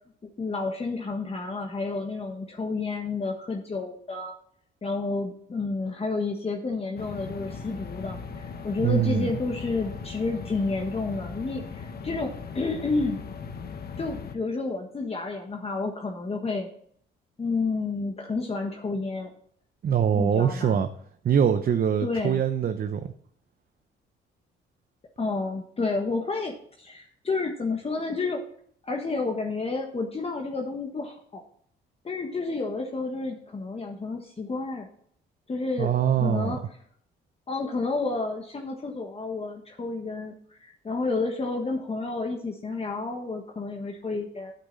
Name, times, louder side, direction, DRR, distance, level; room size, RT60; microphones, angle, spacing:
voice 1, 0.4-4.3 4.8-13.2 14.0-16.7 17.4-19.3 20.1-20.8 22.0-22.4 25.2-28.4 28.8-31.4 32.0-34.9 35.5-36.6 37.5-44.5, left 3 dB, 30° left, 1 dB, 1.4 m, -30 dB
sound 1, 7.0-14.4, left 5 dB, 50° left, 1.2 m, -38 dB
voice 2, 8.8-9.3 19.8-20.9 21.2-23.1 35.8-36.6, right 8 dB, 50° right, 8 dB, 0.8 m, -23 dB
9.4 x 8.5 x 4.0 m, 0.63 s
cardioid pair, 90°, 20 cm